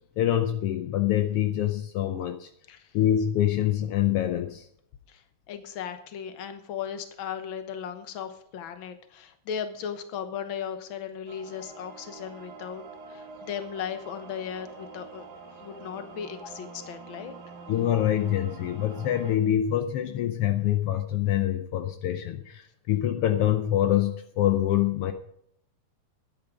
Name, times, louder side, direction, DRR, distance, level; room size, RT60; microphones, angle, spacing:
voice 1, 0.2-2.5 2.9-4.7 17.7-25.1, left 11 dB, 75° left, 6 dB, 1.3 m, -25 dB
voice 2, 5.1-17.3, left 8 dB, 55° left, 8 dB, 1.4 m, -37 dB
sound 1, 11.3-19.4, right 4 dB, 40° right, 1.7 m, -46 dB
12.5 x 9.7 x 5.0 m, 0.71 s
omnidirectional pair, 3.4 m